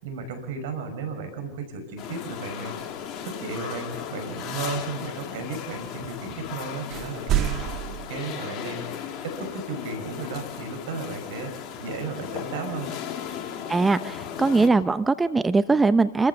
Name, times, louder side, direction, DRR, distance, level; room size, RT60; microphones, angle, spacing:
voice 1, 0.0-7.4 8.1-8.8 9.2-11.5 11.8-12.9, right 4 dB, 70° right, 7 dB, 5.6 m, -34 dB
sound 1, 2.0-14.7, left 8 dB, 45° left, 3.1 m, -36 dB
sound 2, 6.9-8.1, right 11 dB, 45° right, 1.6 m, -26 dB
voice 2, 13.7-16.3, right 3 dB, 15° right, 13 dB, 0.7 m, -21 dB
28.0 x 14.5 x 7.0 m, 0.94 s
hypercardioid pair, 95°, 0 cm